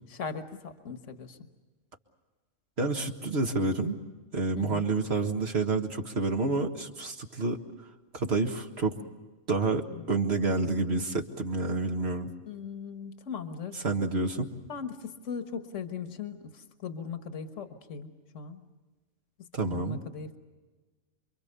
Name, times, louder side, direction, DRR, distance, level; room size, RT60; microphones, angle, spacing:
voice 1, 0.1-1.4 4.6-4.9 9.9-10.1 12.5-13.8 14.7-18.7 19.6-20.4, left 6 dB, 70° left, 7 dB, 1.7 m, -39 dB
voice 2, 2.8-4.0 4.3-7.6 8.1-9.0 9.5-12.3 13.8-14.5 19.5-20.0, right 3 dB, 55° right, 4 dB, 1.9 m, -29 dB
27.5 x 24.0 x 6.8 m, 1.2 s
omnidirectional pair, 1.3 m